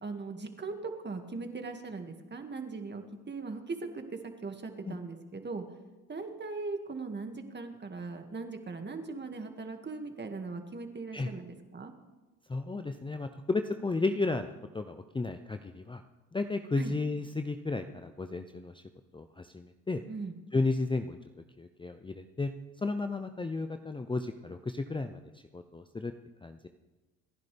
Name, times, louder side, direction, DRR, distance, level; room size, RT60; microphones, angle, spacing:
voice 1, 0.0-5.6 6.1-11.9 16.8-16.9 20.1-20.3, right 3 dB, 30° right, 5 dB, 2.1 m, -39 dB
voice 2, 12.5-16.0 16.3-18.8 19.1-20.0 20.5-21.2 21.6-22.5 22.8-26.1 26.4-26.7, left 3 dB, 15° left, 8 dB, 0.7 m, -33 dB
28.0 x 10.5 x 3.5 m, 1.2 s
supercardioid pair, 70°, 37 cm